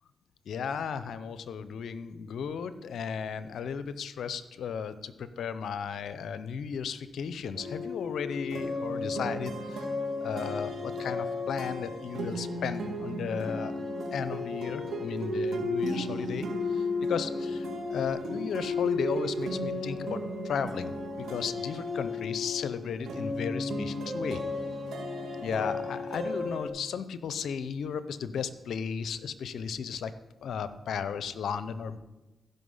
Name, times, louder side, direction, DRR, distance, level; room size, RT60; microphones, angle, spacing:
voice 1, 0.5-9.9 10.2-13.7 14.1-24.4 25.4-30.1 30.4-32.0, left 7 dB, 80° left, 13 dB, 0.6 m, -35 dB
sound 1, 7.5-26.7, left 2 dB, 80° right, 2.0 m, -34 dB
14.5 x 5.6 x 5.6 m, 1.1 s
cardioid pair, 60°, 0 cm